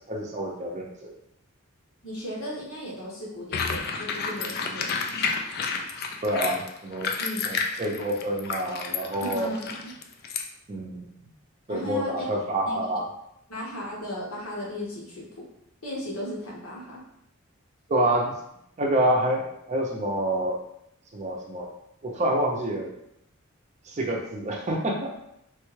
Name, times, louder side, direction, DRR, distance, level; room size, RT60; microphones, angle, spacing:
voice 1, 0.1-1.1 6.2-7.1 7.5-9.5 10.7-11.1 11.7-13.1 17.9-18.3 18.8-20.6 21.1-21.7 22.0-22.9 23.9-25.1, right 1 dB, 35° right, 0 dB, 0.5 m, -27 dB
voice 2, 2.0-5.3 7.2-7.5 9.2-9.9 11.7-12.3 12.6-12.9 13.5-15.5 15.8-17.0, equal, 80° left, -4 dB, 1.0 m, -36 dB
sound 1, 3.5-10.4, left 5 dB, 45° left, 0.3 m, -30 dB
3.2 x 2.2 x 3.1 m, 0.76 s
head